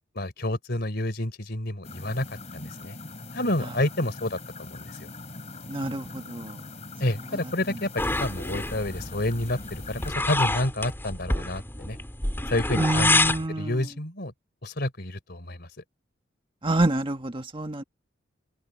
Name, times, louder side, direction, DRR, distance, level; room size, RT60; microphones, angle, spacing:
voice 1, 0.1-3.0 3.3-5.1 7.0-7.9 8.2-12.0 12.5-13.2 13.5-14.3 14.6-15.7, left 1 dB, 55° left, 3.9 m, -29 dB
sound 1, 1.8-10.1, left 2 dB, 35° left, 3.4 m, -42 dB
voice 2, 5.7-6.6 12.8-13.8 16.6-17.8, right 2 dB, 25° right, 1.7 m, -27 dB
sound 2, 8.0-13.5, left 2 dB, 10° left, 4.1 m, -28 dB
open air
head